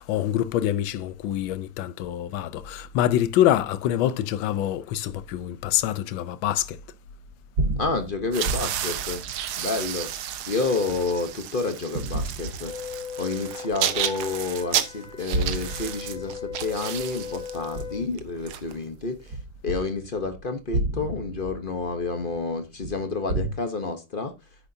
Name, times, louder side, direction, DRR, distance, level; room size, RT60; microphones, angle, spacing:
voice 1, 0.0-6.8, left 12 dB, 70° left, 1.4 m, -25 dB
sound 1, 7.3-11.4 12.0-13.3 13.8-13.9 15.0-18.7 19.3-23.5, right 2 dB, 55° right, 2.4 m, -32 dB
voice 2, 7.8-9.2 9.6-10.1 10.5-12.7 13.2-19.4 19.6-24.3, left 3 dB, 40° left, 0.7 m, -29 dB
sound 2, 8.2-19.3, right 10 dB, 80° right, 1.8 m, -32 dB
Wind instrument woodwind instrument, 12.6-18.1, left 7 dB, 20° left, 2.3 m, -39 dB
9.9 x 9.1 x 2.7 m
omnidirectional pair, 2.4 m